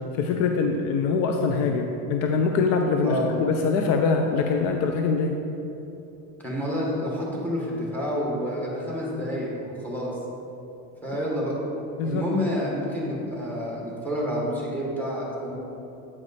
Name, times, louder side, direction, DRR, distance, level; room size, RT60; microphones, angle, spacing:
voice 1, 0.2-5.3 12.0-12.2, left 4 dB, 45° left, 3 dB, 0.4 m, -23 dB
voice 2, 6.4-10.1 11.0-11.5 12.0-15.5, equal, 5° left, -4 dB, 1.5 m, -28 dB
8.5 x 4.9 x 4.1 m, 2.9 s
cardioid pair, 150°, 37 cm